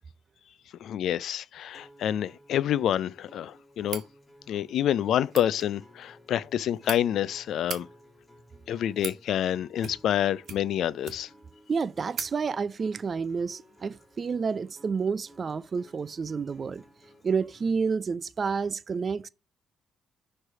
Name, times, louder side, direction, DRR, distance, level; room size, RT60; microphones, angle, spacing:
voice 1, 0.8-4.0 4.5-7.9 8.7-11.3, left 10 dB, 75° left, 0.3 m, -28 dB
Acoustic guitar, 1.7-17.7, equal, 15° left, 2.2 m, -56 dB
sound 1, 3.8-4.1 5.2-5.5 6.4-7.0 7.5-7.8 8.6-9.2 9.8-10.2 10.4-11.4 11.7-11.8 12.1-12.3, right 7 dB, 65° right, 1.3 m, -38 dB
voice 2, 11.7-16.8 17.2-19.3, right 5 dB, 40° right, 0.4 m, -29 dB
6.1 x 3.3 x 5.4 m
cardioid pair, 90°, 0 cm